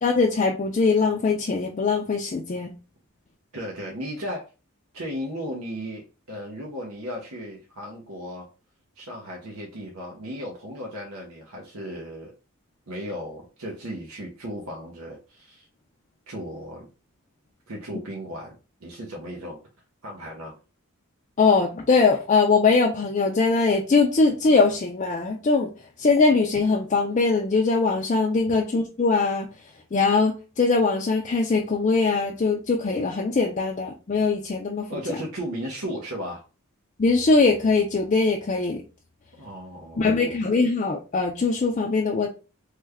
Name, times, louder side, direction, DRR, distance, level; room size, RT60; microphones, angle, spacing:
voice 1, 0.0-2.7 21.4-25.7 26.0-29.5 29.9-34.9 37.0-38.8 40.0-42.3, left 4 dB, 35° left, 1 dB, 0.4 m, -21 dB
voice 2, 3.5-4.5 4.9-8.5 9.0-12.3 12.9-15.7 16.3-16.9 17.7-18.5 18.8-19.6 20.0-20.5 28.5-28.6 34.9-36.4 39.4-40.4, equal, 75° right, -1 dB, 0.7 m, -35 dB
3.2 x 2.2 x 3.4 m, 0.32 s
head